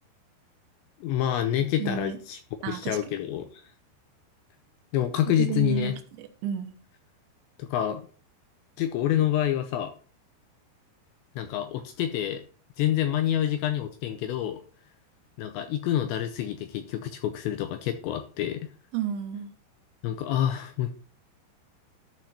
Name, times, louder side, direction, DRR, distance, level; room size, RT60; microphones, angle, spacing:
voice 1, 1.0-2.4 2.7-3.6 4.9-6.0 7.6-8.0 8.8-9.9 11.4-12.4 12.8-14.6 15.4-18.7 20.0-20.9, left 11 dB, 80° left, 7 dB, 2.7 m, -27 dB
voice 2, 1.8-2.2 2.6-3.2 5.4-6.8 18.9-19.5, right 9 dB, 75° right, 5 dB, 3.2 m, -32 dB
12.5 x 4.4 x 4.2 m, 0.39 s
omnidirectional pair, 5.6 m